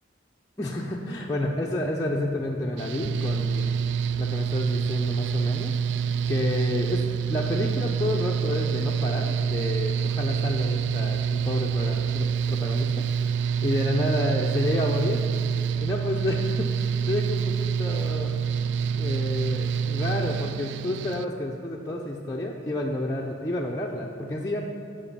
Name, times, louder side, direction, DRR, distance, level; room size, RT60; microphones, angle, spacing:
voice 1, 0.6-3.7 4.2-5.8 6.3-15.3 15.8-18.4 19.0-24.6, left 1 dB, 20° left, -3 dB, 0.5 m, -30 dB
Mechanical fan, 2.8-21.3, right 7 dB, 70° right, 0.3 m, -27 dB
11.0 x 5.3 x 7.4 m, 2.4 s
head